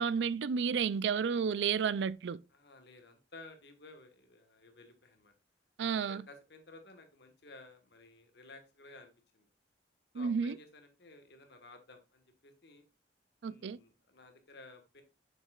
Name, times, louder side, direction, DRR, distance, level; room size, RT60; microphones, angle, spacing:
voice 1, 0.0-2.4 5.8-6.2 10.1-10.6 13.4-13.8, right 6 dB, 75° right, 0.4 m, -31 dB
voice 2, 2.5-5.3 6.0-9.5 10.1-12.8 13.4-15.0, left 2 dB, 65° left, 1.5 m, -55 dB
7.4 x 6.6 x 2.4 m
head